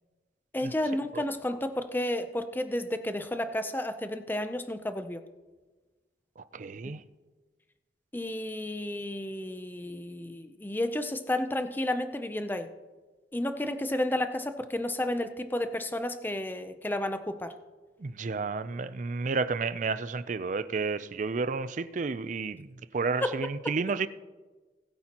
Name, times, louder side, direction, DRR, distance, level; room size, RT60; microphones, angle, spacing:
voice 1, 0.5-5.2 8.1-12.7 13.3-17.5 23.2-23.3, left 1 dB, 10° left, 9 dB, 0.5 m, -32 dB
voice 2, 6.5-7.0 18.0-22.7 22.9-24.1, right 4 dB, 45° right, 14 dB, 0.4 m, -31 dB
20.0 x 8.8 x 2.9 m, 1.3 s
head